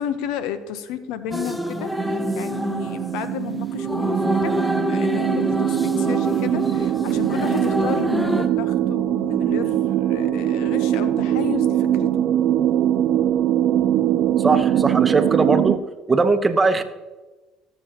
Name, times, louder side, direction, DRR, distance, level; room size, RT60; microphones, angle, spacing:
voice 1, 0.0-4.6 4.9-12.2 15.6-15.7 16.1-16.2, left 9 dB, 75° left, 12 dB, 0.7 m, -32 dB
sound 1, 1.3-8.5, equal, ahead, 0.7 m, -26 dB
sound 2, 1.9-15.8, right 11 dB, 65° right, 0.4 m, -22 dB
voice 2, 14.4-15.8 16.1-16.8, right 3 dB, 25° right, 9 dB, 0.9 m, -19 dB
18.0 x 7.0 x 2.9 m, 1.2 s
supercardioid pair, 80°, 0 cm